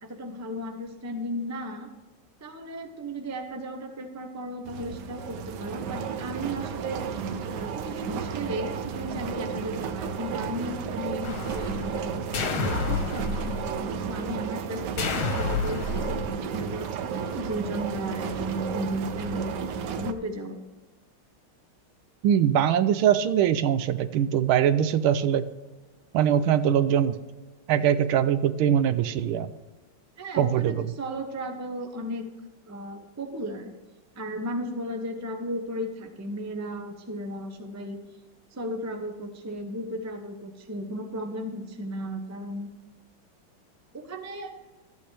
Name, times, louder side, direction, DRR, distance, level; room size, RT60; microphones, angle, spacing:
voice 1, 0.0-1.9 2.4-7.0 7.5-20.6 30.2-32.3 32.7-33.7 34.1-38.0 38.5-42.7 43.9-44.5, right 1 dB, 20° right, 4 dB, 0.5 m, -35 dB
sound 1, 4.7-20.1, right 6 dB, 65° right, 1.2 m, -33 dB
sound 2, 11.2-12.0 12.3-13.9 15.0-16.3, left 4 dB, 80° left, 1.9 m, -30 dB
voice 2, 22.2-25.4 26.1-27.2 27.7-29.5 30.4-30.9, right 9 dB, 85° right, 13 dB, 1.5 m, -22 dB
13.0 x 8.6 x 3.3 m, 1.2 s
omnidirectional pair, 2.2 m